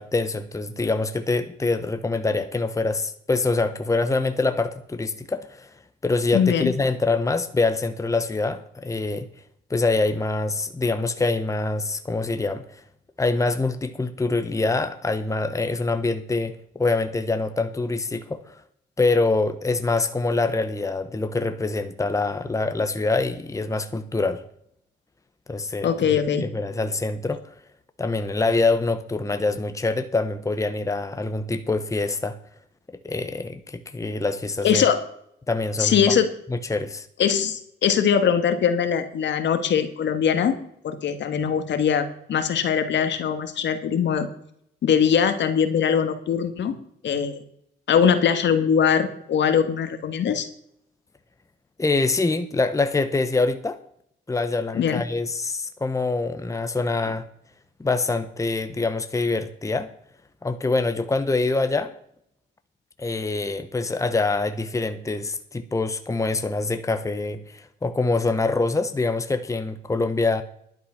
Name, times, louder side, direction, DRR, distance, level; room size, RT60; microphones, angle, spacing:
voice 1, 0.0-5.7 6.0-9.3 9.7-12.8 13.2-18.6 19.0-24.4 25.5-27.4 28.0-32.4 32.9-34.8 35.5-36.1 36.5-37.1 51.8-53.8 54.3-57.2 57.8-59.9 60.4-61.9 63.0-70.4, left 3 dB, 15° left, 10 dB, 1.1 m, -25 dB
voice 2, 6.3-6.7 25.8-26.4 34.6-35.0 35.8-36.3 37.2-40.6 40.8-44.3 44.8-46.8 47.0-47.4 47.9-50.5 54.7-55.0, left 7 dB, 65° left, 9 dB, 1.8 m, -21 dB
11.5 x 9.1 x 5.9 m, 0.70 s
cardioid pair, 90°, 20 cm